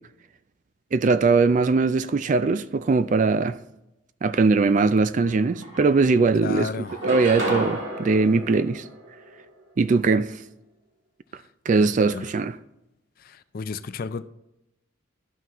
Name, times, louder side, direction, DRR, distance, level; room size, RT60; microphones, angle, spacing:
voice 1, 0.9-3.6 4.2-6.7 7.1-8.8 9.8-10.4 11.7-12.5, right 4 dB, 35° right, 0.3 m, -20 dB
sound 1, 5.2-5.3 5.6-6.4 6.9-9.5, right 1 dB, 60° right, 2.0 m, -31 dB
voice 2, 6.4-7.0 11.8-12.3 13.2-14.2, left 5 dB, 45° left, 0.4 m, -33 dB
12.5 x 5.8 x 3.0 m
head